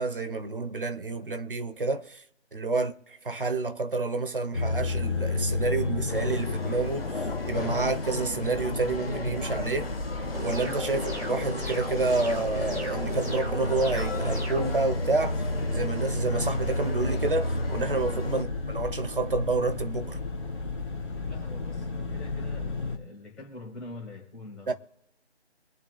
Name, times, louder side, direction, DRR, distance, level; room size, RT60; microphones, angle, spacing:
voice 1, 0.0-2.2 2.5-9.9 10.4-20.2 24.7-24.8, right 3 dB, 50° right, 0.9 m, -29 dB
sound 1, 4.5-23.0, left 2 dB, 30° left, 2.0 m, -32 dB
sound 2, 6.1-18.4, left 3 dB, 60° left, 1.1 m, -37 dB
sound 3, 10.3-14.7, equal, 75° right, 3.3 m, -36 dB
voice 2, 21.3-24.7, left 2 dB, ahead, 1.0 m, -45 dB
26.0 x 8.7 x 2.3 m
figure-of-eight pair, 155°, 33 cm